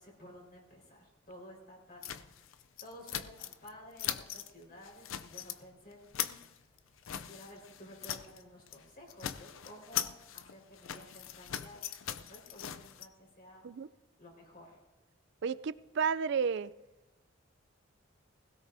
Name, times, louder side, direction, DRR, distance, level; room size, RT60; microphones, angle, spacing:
voice 1, 0.0-2.5 2.8-6.4 7.0-13.7 14.2-14.8, left 1 dB, 45° left, 4.6 m, -53 dB
sound 1, 2.0-3.7 4.0-4.5 4.8-5.6 5.9-8.4 8.7-8.8 9.1-13.1, left 10 dB, 80° left, 0.5 m, -40 dB
voice 2, 15.4-16.7, right 6 dB, 60° right, 0.4 m, -32 dB
20.5 x 16.5 x 2.7 m
head